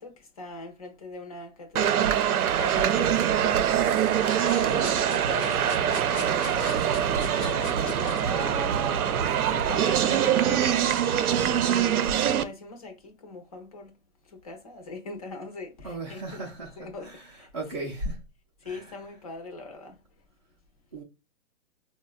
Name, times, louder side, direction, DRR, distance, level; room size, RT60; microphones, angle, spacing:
voice 1, 0.0-2.1 2.6-4.0 4.6-6.8 7.3-13.9 14.4-16.5 16.8-17.1 17.4-17.5 17.8-17.9 18.6-19.9, left 3 dB, 25° left, 0.5 m, -41 dB
sound 1, 1.7-12.4, right 9 dB, 85° right, 0.6 m, -24 dB
voice 2, 2.9-3.2 15.8-18.2 18.6-19.1 20.9-21.0, right 2 dB, 30° right, 0.4 m, -37 dB
sound 2, 4.1-8.3, left 7 dB, 70° left, 0.7 m, -41 dB
4.2 x 2.1 x 2.2 m
hypercardioid pair, 165°, 43 cm